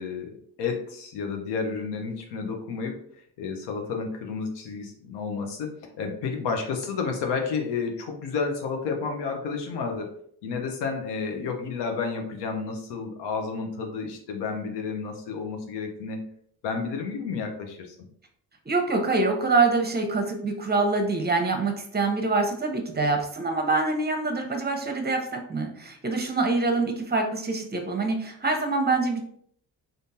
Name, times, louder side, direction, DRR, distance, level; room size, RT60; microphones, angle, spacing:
voice 1, 0.0-3.0 3.4-10.2 10.4-16.2 16.6-18.1, left 5 dB, 85° left, 3 dB, 0.8 m, -31 dB
voice 2, 18.7-29.2, right 3 dB, 25° right, 4 dB, 0.8 m, -25 dB
3.6 x 2.6 x 2.7 m, 0.65 s
supercardioid pair, 65°, 40 cm